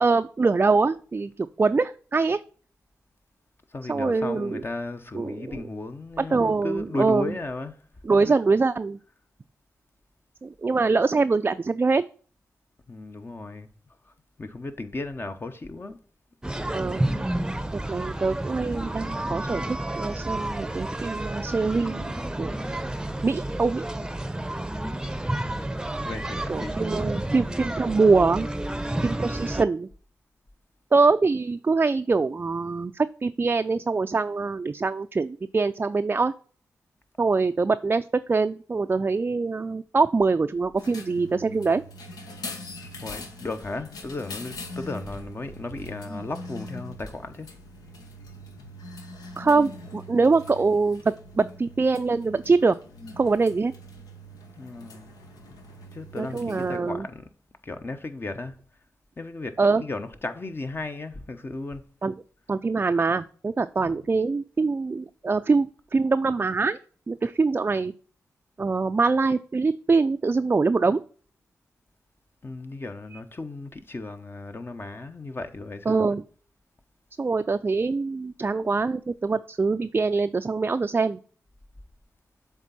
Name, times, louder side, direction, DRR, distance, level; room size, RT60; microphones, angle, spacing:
voice 1, 0.0-2.4 3.9-4.6 5.1-5.7 6.2-7.3 8.0-9.0 10.4-12.0 16.7-17.0 17.9-22.1 22.4-22.6 23.2-23.8 26.5-28.5 29.0-29.9 30.9-36.3 37.2-41.8 49.4-52.8 53.2-53.7 56.1-57.1 59.6-59.8 62.0-62.1 62.5-66.8 67.1-67.9 68.6-71.0 75.9-76.2 77.2-81.2, right 4 dB, 35° right, 0.4 m, -24 dB
voice 2, 3.7-7.8 8.3-8.4 12.9-13.7 14.4-16.0 26.0-26.8 43.0-47.5 54.6-55.1 55.9-57.3 57.6-58.6 59.2-61.9 63.8-64.1 72.4-76.1, left 2 dB, 35° left, 0.9 m, -35 dB
sound 1, 16.4-29.7, right 1 dB, 10° right, 0.7 m, -30 dB
sound 2, 40.8-56.8, left 1 dB, 80° left, 1.1 m, -42 dB
7.3 x 3.6 x 4.1 m
supercardioid pair, 45°, 6 cm